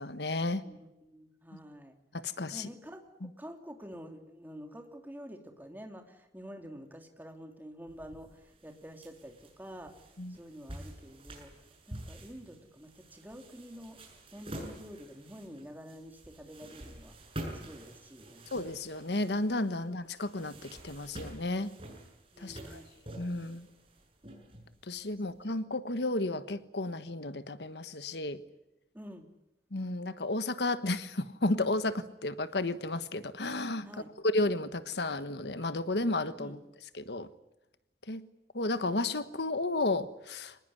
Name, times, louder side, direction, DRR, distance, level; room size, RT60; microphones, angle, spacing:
voice 1, 0.0-0.6 2.2-2.7 3.2-3.3 10.2-10.4 18.5-21.7 22.4-22.8 23.1-23.7 24.9-28.4 29.7-33.9 34.2-36.6 36.9-37.3 38.1-38.2 38.5-40.5, left 2 dB, 80° left, 12 dB, 1.4 m, -32 dB
voice 2, 0.6-1.9 2.5-9.9 10.3-11.5 11.9-14.0 14.3-17.1 17.5-18.5 22.3-22.9 25.3-25.4 28.9-29.3 33.8-34.1 36.4-36.6, equal, 10° right, 4 dB, 3.1 m, -48 dB
sound 1, 7.9-25.3, right 1 dB, 30° right, 7.7 m, -48 dB
25.5 x 20.0 x 9.7 m, 0.92 s
head